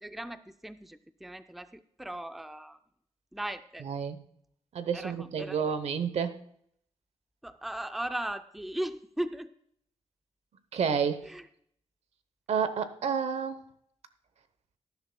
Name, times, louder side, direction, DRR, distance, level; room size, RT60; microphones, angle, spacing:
voice 1, 0.0-2.8 3.3-3.9 4.9-5.6 7.4-9.5 11.2-11.4, right 1 dB, ahead, 10 dB, 0.4 m, -37 dB
voice 2, 3.8-4.2 4.7-6.4 10.7-11.3 12.5-13.6, right 6 dB, 70° right, 11 dB, 0.9 m, -30 dB
18.5 x 10.5 x 2.3 m, 0.67 s
wide cardioid pair, 115°, 11 cm